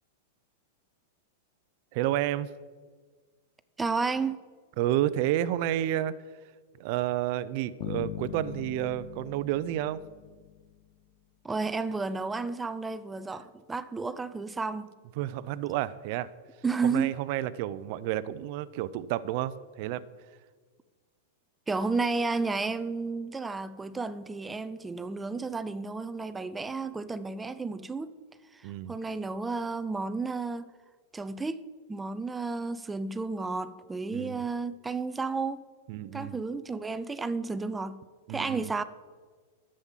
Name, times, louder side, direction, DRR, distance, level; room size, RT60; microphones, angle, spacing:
voice 1, 1.9-2.5 4.8-6.1 6.8-10.0 15.2-16.3 16.8-20.0 28.6-29.0 34.1-34.4 35.9-36.4 38.3-38.7, right 13 dB, 55° right, 0.6 m, -30 dB
voice 2, 3.8-4.4 11.4-14.9 16.6-17.1 21.7-28.1 28.5-30.7 31.1-35.6 36.1-38.0 38.3-38.8, right 4 dB, 10° right, 0.6 m, -32 dB
sound 1, 7.8-10.8, left 13 dB, 50° left, 0.6 m, -40 dB
11.0 x 7.6 x 7.4 m
hypercardioid pair, 125°, 0 cm